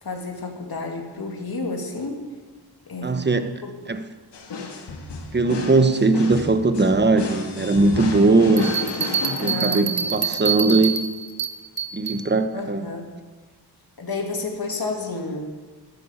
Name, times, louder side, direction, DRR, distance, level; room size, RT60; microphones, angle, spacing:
voice 1, 0.0-2.3 2.9-3.2 3.6-3.7 9.4-10.3 12.5-13.2 14.0-15.5, left 3 dB, 60° left, 1 dB, 2.4 m, -31 dB
voice 2, 3.0-3.5 3.9-4.0 5.3-8.7 9.4-11.0 11.9-12.8, right 3 dB, 25° right, 9 dB, 1.0 m, -19 dB
sound 1, 4.3-10.2, left 3 dB, 80° left, 1.8 m, -32 dB
sound 2, 8.6-12.2, right 7 dB, 55° right, 1.0 m, -26 dB
12.0 x 11.0 x 7.2 m, 1.3 s
cardioid pair, 65°, 41 cm